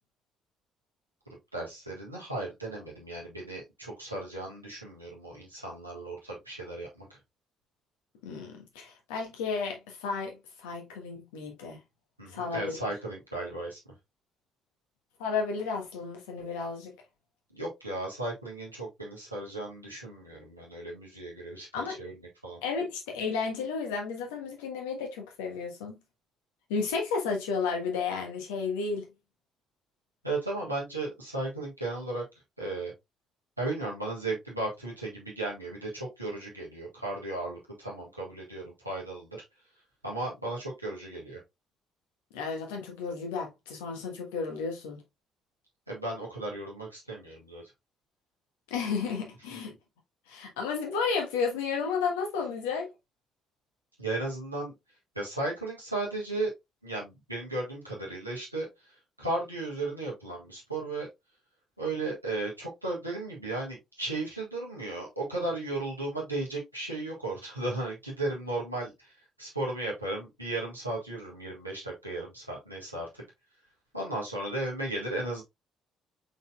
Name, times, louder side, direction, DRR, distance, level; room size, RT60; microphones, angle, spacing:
voice 1, 1.5-7.2 12.2-13.8 17.5-22.6 30.2-32.2 32.6-32.9 33.6-39.4 40.0-41.4 45.9-47.6 49.5-49.6 54.0-54.7 55.1-56.5 56.8-61.1 61.8-73.2 73.9-75.4, right 2 dB, 90° right, 1.5 m, -35 dB
voice 2, 8.2-11.8 12.3-12.8 15.2-16.9 21.7-22.0 22.6-26.0 26.7-29.1 42.3-45.0 48.7-49.7 50.3-52.9, left 5 dB, 70° left, 1.3 m, -32 dB
5.2 x 4.2 x 2.3 m
figure-of-eight pair, 45°, 0 cm